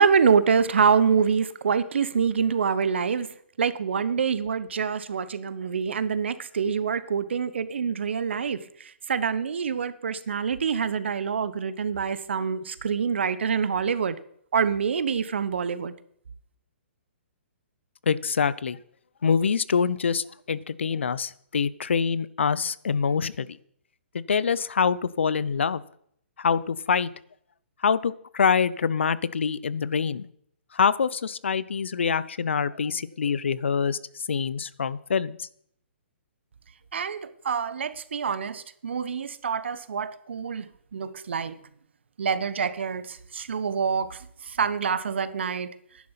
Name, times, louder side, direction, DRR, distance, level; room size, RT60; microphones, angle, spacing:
voice 1, 0.0-3.3 3.6-14.1 14.5-15.9 36.9-41.6 42.2-45.7, right 6 dB, 65° right, 1.0 m, -26 dB
voice 2, 18.1-18.8 19.2-23.5 24.3-25.8 26.4-27.1 27.8-30.3 30.7-34.0 34.3-35.5, left 6 dB, 70° left, 0.6 m, -25 dB
11.0 x 10.5 x 5.8 m
figure-of-eight pair, 125°, 7 cm